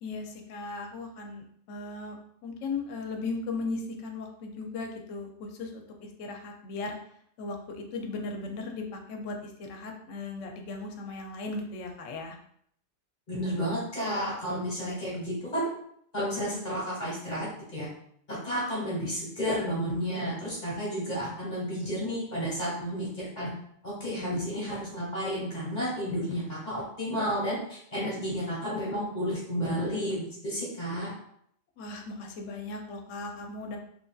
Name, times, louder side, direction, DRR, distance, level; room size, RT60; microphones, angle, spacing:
voice 1, 0.0-2.2 2.4-7.0 7.4-12.4 31.8-33.8, left 3 dB, 80° left, 3 dB, 0.9 m, -37 dB
voice 2, 13.3-15.7 16.1-17.9 18.3-23.5 23.8-31.1, equal, 40° left, -5 dB, 1.2 m, -32 dB
3.1 x 2.5 x 2.3 m, 0.66 s
omnidirectional pair, 1.3 m